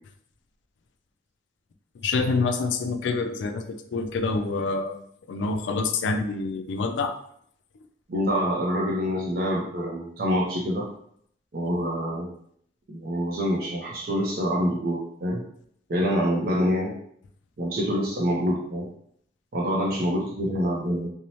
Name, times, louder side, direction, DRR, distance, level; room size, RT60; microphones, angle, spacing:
voice 1, 2.0-5.0 5.3-7.1, left 3 dB, 90° left, 7 dB, 0.3 m, -26 dB
voice 2, 8.1-10.9 11.5-12.3 12.9-15.4 15.9-16.9 17.6-18.9 19.5-21.1, equal, 55° right, -3 dB, 0.5 m, -26 dB
2.7 x 2.0 x 3.0 m, 0.66 s
head